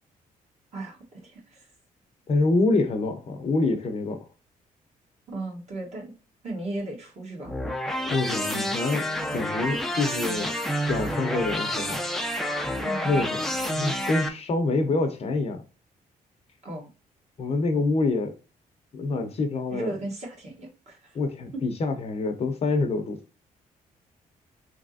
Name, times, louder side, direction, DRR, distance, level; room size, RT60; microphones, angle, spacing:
voice 1, 0.7-1.7 5.3-6.1 6.4-7.5 12.8-13.1 16.6-16.9 19.7-21.2, right 2 dB, 45° right, 1.7 m, -36 dB
voice 2, 2.3-4.2 8.1-9.0 9.3-10.5 10.9-12.0 13.0-15.6 17.4-18.3 18.9-19.9 21.1-23.2, left 3 dB, 45° left, 0.7 m, -26 dB
sound 1, 7.4-14.3, equal, ahead, 0.5 m, -29 dB
3.4 x 2.9 x 2.5 m
cardioid pair, 115°, 15 cm